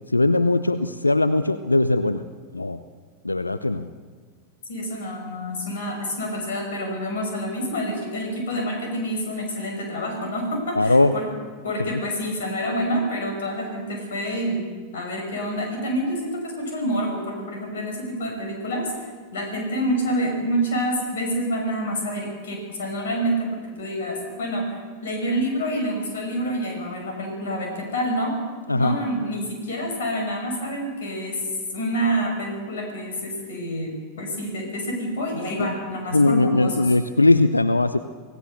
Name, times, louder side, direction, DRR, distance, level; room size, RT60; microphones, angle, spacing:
voice 1, 0.1-2.2 2.5-2.8 3.2-3.9 10.8-11.1 11.8-12.0 28.7-28.9 35.6-35.7 36.1-38.0, left 2 dB, 80° left, 12 dB, 0.8 m, -20 dB
voice 2, 4.6-11.3 11.6-14.6 14.9-28.3 28.7-31.4 31.7-36.9, equal, 60° left, 2 dB, 6.0 m, -27 dB
29.0 x 18.0 x 6.7 m, 1.5 s
figure-of-eight pair, 90°, 0 cm